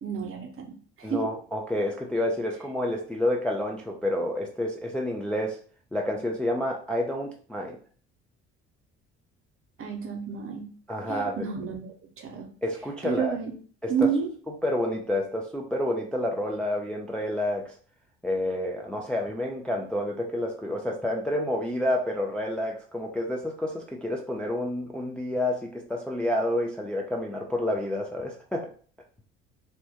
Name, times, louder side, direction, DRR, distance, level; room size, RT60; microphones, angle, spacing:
voice 1, 0.0-1.3 9.8-10.7 11.1-12.5 13.0-13.5 13.9-14.3, right 6 dB, 40° right, 3 dB, 0.7 m, -30 dB
voice 2, 1.0-5.6 5.9-7.8 10.9-11.4 12.6-13.3 13.8-13.9 14.6-17.7 18.2-28.7, left 1 dB, 5° left, 0 dB, 0.3 m, -29 dB
2.1 x 2.1 x 2.7 m, 0.43 s
hypercardioid pair, 55°, 34 cm